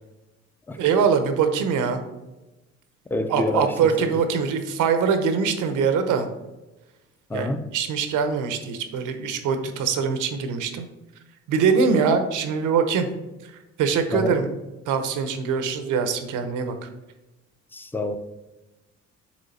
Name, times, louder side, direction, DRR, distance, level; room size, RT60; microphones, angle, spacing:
voice 1, 0.8-2.0 3.3-6.3 7.3-10.9 11.5-13.1 13.4-13.5 13.8-14.5 14.9-16.9, right 6 dB, 85° right, 8 dB, 0.8 m, -23 dB
voice 2, 3.1-3.7 4.0-4.1 7.3-7.6 14.1-14.4 17.7-18.2, left 1 dB, 5° left, 8 dB, 0.5 m, -27 dB
7.3 x 3.2 x 4.1 m, 1.0 s
cardioid pair, 90°, 30 cm